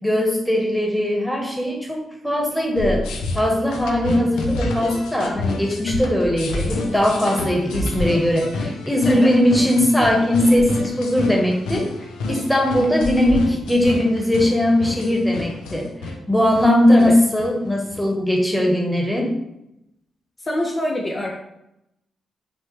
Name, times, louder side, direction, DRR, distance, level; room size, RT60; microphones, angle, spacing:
voice 1, 0.0-3.0 3.3-11.9 12.3-19.3, left 1 dB, ahead, 0 dB, 1.1 m, -19 dB
sound 1, 2.7-18.1, left 2 dB, 90° left, 0.5 m, -29 dB
voice 2, 20.4-21.3, left 1 dB, 35° left, 0 dB, 0.5 m, -24 dB
5.6 x 2.2 x 3.2 m, 0.85 s
supercardioid pair, 55°, 0 cm